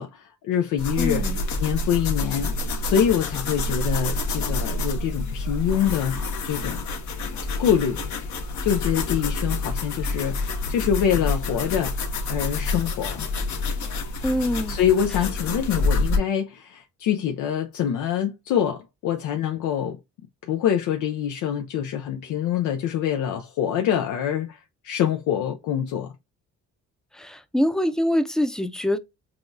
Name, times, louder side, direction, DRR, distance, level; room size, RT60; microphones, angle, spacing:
voice 1, 0.0-1.3 1.6-2.5 2.8-6.2 6.4-6.8 7.6-8.0 8.6-11.9 12.3-13.3 14.7-20.0 20.4-26.1, left 9 dB, 85° left, 0.6 m, -25 dB
sound 1, 0.8-16.2, left 2 dB, 70° left, 1.0 m, -28 dB
voice 2, 1.0-1.4 14.2-14.8 27.1-29.0, equal, ahead, 0.5 m, -24 dB
5.8 x 2.3 x 2.5 m
cardioid pair, 90°, 30 cm